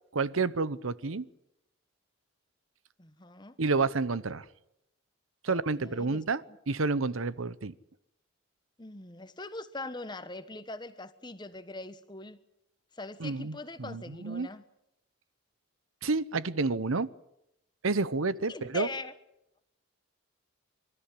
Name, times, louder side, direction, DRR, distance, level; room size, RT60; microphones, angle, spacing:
voice 1, 0.1-1.3 3.6-4.4 5.4-6.4 6.7-7.7 13.2-14.5 16.0-17.1 17.8-18.9, right 3 dB, 85° right, 17 dB, 0.9 m, -29 dB
voice 2, 3.0-3.6 5.5-6.2 8.8-12.4 12.9-14.6 18.5-19.1, left 2 dB, 20° left, 12 dB, 1.1 m, -42 dB
26.0 x 13.5 x 9.9 m, 0.83 s
head